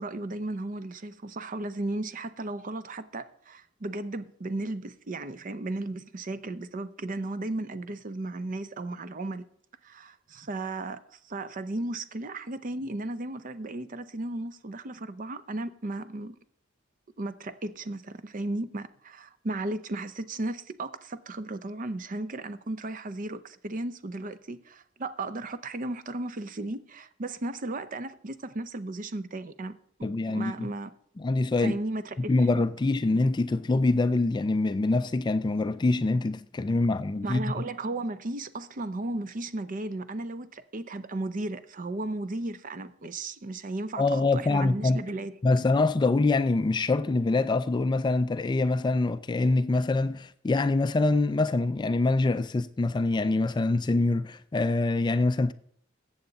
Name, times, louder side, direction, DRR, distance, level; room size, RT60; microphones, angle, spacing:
voice 1, 0.0-9.4 9.8-16.4 17.2-29.7 30.0-30.9 31.6-32.5 37.2-45.3, right 2 dB, 40° right, 0.6 m, -35 dB
voice 2, 30.0-30.7 31.2-31.8 32.3-37.4 44.0-45.0 45.4-55.5, left 3 dB, 20° left, 0.3 m, -25 dB
14.0 x 7.9 x 3.9 m
head